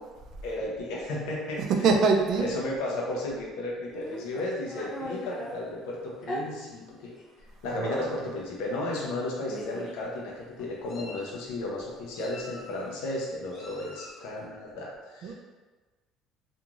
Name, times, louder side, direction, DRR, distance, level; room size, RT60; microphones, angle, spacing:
voice 1, 0.4-1.6 2.4-7.1 7.6-15.3, left 2 dB, 85° left, -3 dB, 0.6 m, -34 dB
voice 2, 1.6-2.5 7.7-8.3 15.2-15.3, right 4 dB, 60° right, 3 dB, 0.4 m, -24 dB
Meow, 3.9-5.6 6.2-6.4 7.3-7.4 7.8-8.0 9.0-9.1 9.5-10.0 10.6-11.3 12.1-12.9 13.5-14.2, equal, 40° left, 0.8 m, -40 dB
2.9 x 2.5 x 2.4 m, 1.3 s
cardioid pair, 110°, 0 cm